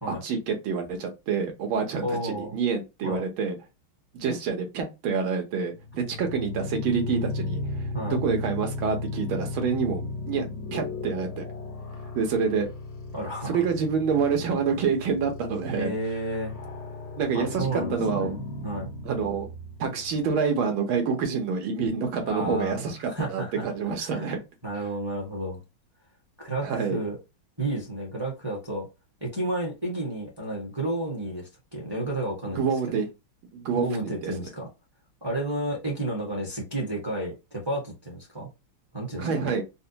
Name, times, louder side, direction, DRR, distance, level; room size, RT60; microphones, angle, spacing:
voice 1, 0.1-3.6 4.1-7.6 8.1-10.5 10.7-11.4 12.1-12.7 13.5-15.9 17.2-18.4 19.0-19.5 19.8-24.4 26.6-27.0 32.6-33.1 33.5-34.3 39.2-39.6, right 5 dB, 75° right, 1.7 m, -27 dB
voice 2, 2.0-2.6 3.0-3.2 7.9-8.2 13.1-13.6 15.7-16.5 17.3-18.9 22.2-23.6 24.0-24.3 24.6-25.6 26.4-27.2 27.6-28.9 29.2-32.7 33.7-34.7 35.2-38.5 38.9-39.5, right 1 dB, 15° right, 0.8 m, -31 dB
sound 1, 5.7-20.3, left 3 dB, 85° left, 0.6 m, -35 dB
4.1 x 2.1 x 2.7 m
omnidirectional pair, 2.3 m